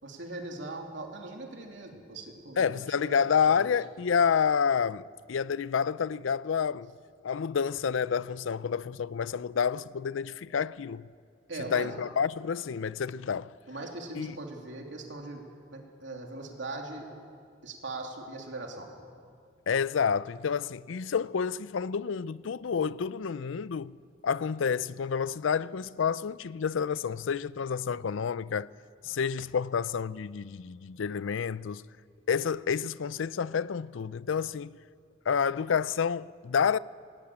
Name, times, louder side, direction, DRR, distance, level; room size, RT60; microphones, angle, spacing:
voice 1, 0.0-3.7 11.5-11.9 13.7-15.4 15.7-17.1 17.6-18.9, right 2 dB, 70° right, 3.1 m, -40 dB
voice 2, 2.6-6.9 7.2-11.1 11.7-13.5 14.2-14.3 19.7-24.0 24.2-28.7 29.0-31.8 32.3-34.8 35.3-36.8, left 6 dB, 80° left, 0.4 m, -29 dB
19.0 x 18.5 x 8.7 m
head